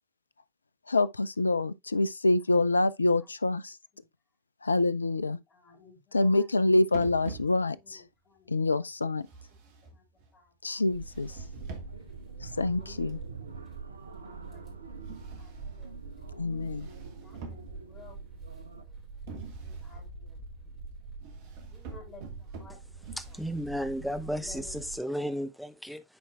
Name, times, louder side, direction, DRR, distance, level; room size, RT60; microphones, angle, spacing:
voice 1, 0.9-3.8 4.6-5.4 6.1-8.0 8.5-9.3 10.6-11.4 12.4-13.2 16.4-16.9, left 2 dB, 80° left, 0.3 m, -26 dB
voice 2, 5.0-6.6 7.2-8.9 9.8-10.0 10.3-11.5 12.2-13.7 14.2-14.6 15.0-15.9 17.2-18.2 18.7-19.0 19.6-20.9 21.7-23.4 24.1-25.5, left 4 dB, 25° left, 3.3 m, -57 dB
sound 1, 6.9-8.0 9.2-10.4 11.1-12.2 13.1-13.5 15.0-16.0 16.6-18.1 19.3-20.0 21.2-24.0, right 4 dB, 50° right, 1.5 m, -46 dB
sound 2, 10.9-25.0, right 4 dB, 30° right, 3.0 m, -45 dB
sound 3, 11.4-18.8, right 4 dB, 75° right, 0.7 m, -48 dB
voice 3, 23.2-26.0, equal, ahead, 0.7 m, -34 dB
10.0 x 4.3 x 2.3 m
figure-of-eight pair, 90°, 0 cm